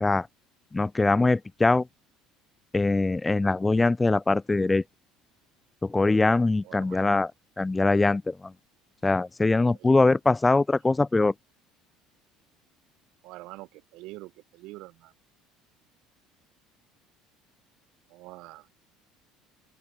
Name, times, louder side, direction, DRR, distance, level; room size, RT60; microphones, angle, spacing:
voice 1, 0.7-1.8 2.7-4.8 5.8-7.3 7.6-8.4 9.0-11.3, left 3 dB, 15° left, 0.6 m, -22 dB
voice 2, 6.6-7.2 9.6-10.1 13.2-15.1 18.1-18.7, right 20 dB, 70° right, 6.4 m, -45 dB
open air
supercardioid pair, 80°, 0 cm